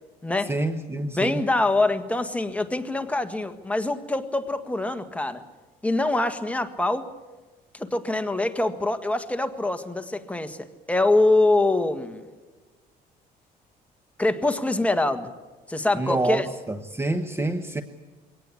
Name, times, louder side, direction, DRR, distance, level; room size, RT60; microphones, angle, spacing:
voice 1, 0.4-1.4 15.9-17.8, right 2 dB, 15° right, 9 dB, 1.1 m, -27 dB
voice 2, 1.0-5.4 5.8-7.1 7.7-10.6 10.9-12.2 14.2-15.3 15.7-16.5, left 2 dB, 10° left, 7 dB, 1.7 m, -24 dB
23.0 x 18.0 x 8.5 m, 1.3 s
cardioid pair, 110°, 17 cm